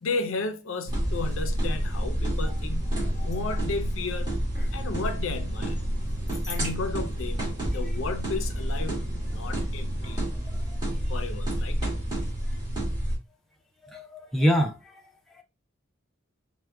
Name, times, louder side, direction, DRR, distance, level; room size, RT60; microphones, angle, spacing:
voice 1, 0.0-4.3 4.7-5.8 6.5-9.0 9.3-10.2 11.1-11.8, left 3 dB, 80° left, 0.5 m, -33 dB
sound 1, 0.9-13.2, equal, 20° right, 1.8 m, -29 dB
voice 2, 13.8-15.0 15.4-15.5, equal, ahead, 0.4 m, -25 dB
4.6 x 2.1 x 2.2 m
head